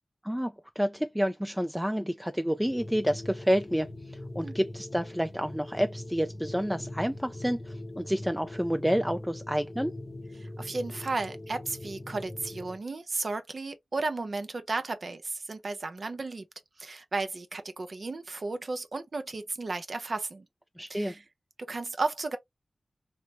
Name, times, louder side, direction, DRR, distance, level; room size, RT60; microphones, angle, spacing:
voice 1, 0.2-3.9 4.4-9.9 20.8-21.1, equal, 5° right, 0.3 m, -29 dB
sound 1, 2.6-12.8, left 1 dB, 40° left, 0.8 m, -42 dB
voice 2, 10.4-16.4 16.8-20.5 20.9-21.2 21.7-22.4, right 3 dB, 60° right, 0.6 m, -34 dB
3.1 x 2.0 x 2.9 m
cardioid pair, 45°, 0 cm